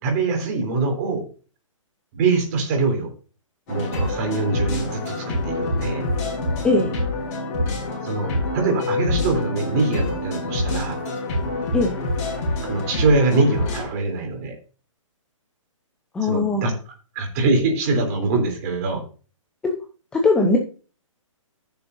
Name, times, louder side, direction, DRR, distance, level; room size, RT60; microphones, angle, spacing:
voice 1, 0.0-1.2 2.1-3.1 3.7-6.0 8.0-11.0 12.6-14.5 16.2-16.7 17.1-19.0, right 3 dB, 30° right, 2 dB, 3.3 m, -23 dB
sound 1, 3.7-13.8, left 2 dB, 30° left, 5.6 m, -26 dB
voice 2, 16.1-16.7 19.6-19.7 20.1-20.6, left 3 dB, 5° left, 2 dB, 0.6 m, -19 dB
14.0 x 7.0 x 2.6 m, 0.36 s
hypercardioid pair, 165°, 17 cm